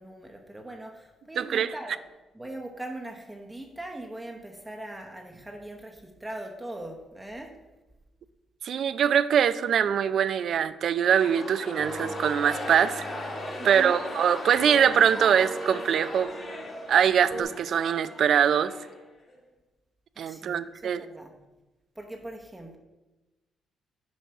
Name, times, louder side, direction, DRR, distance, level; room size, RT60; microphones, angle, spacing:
voice 1, 0.0-1.9 2.3-7.6 13.6-14.0 20.2-21.4 21.9-22.8, right 1 dB, 10° right, 2 dB, 0.9 m, -40 dB
voice 2, 1.4-1.7 8.6-13.1 13.6-16.3 16.9-18.7 20.2-21.0, right 8 dB, 65° right, 14 dB, 0.4 m, -23 dB
sound 1, 10.9-19.4, left 2 dB, 45° left, 1.9 m, -38 dB
sound 2, 11.8-17.4, right 3 dB, 80° right, 1.9 m, -41 dB
7.6 x 5.5 x 4.7 m, 1.1 s
cardioid pair, 90°, 0 cm